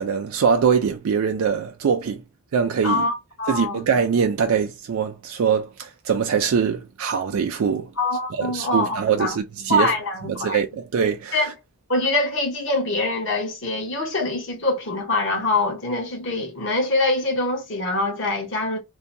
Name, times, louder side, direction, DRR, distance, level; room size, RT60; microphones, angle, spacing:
voice 1, 0.0-2.2 2.5-3.0 3.5-7.9 8.3-9.9 10.3-11.5, right 6 dB, 80° right, 0.4 m, -23 dB
voice 2, 2.8-3.8 8.0-9.4 9.7-10.6 11.3-11.5 11.9-18.8, left 2 dB, 60° left, 0.9 m, -24 dB
2.7 x 2.2 x 2.6 m
head